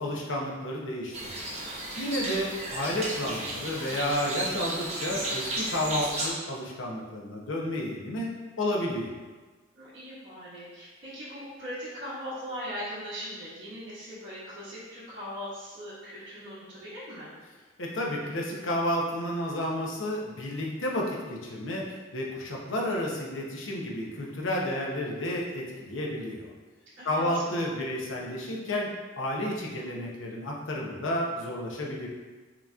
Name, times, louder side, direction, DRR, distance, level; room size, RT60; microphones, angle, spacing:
voice 1, 0.0-1.4 2.0-8.3 8.6-9.1 17.8-26.5 27.0-32.1, left 1 dB, 70° left, -2 dB, 0.8 m, -31 dB
sound 1, 1.1-6.3, right 1 dB, 35° right, 0.9 m, -34 dB
voice 2, 9.7-17.3 27.0-27.4, equal, 65° right, -12 dB, 1.5 m, -40 dB
5.9 x 2.9 x 2.4 m, 1.3 s
head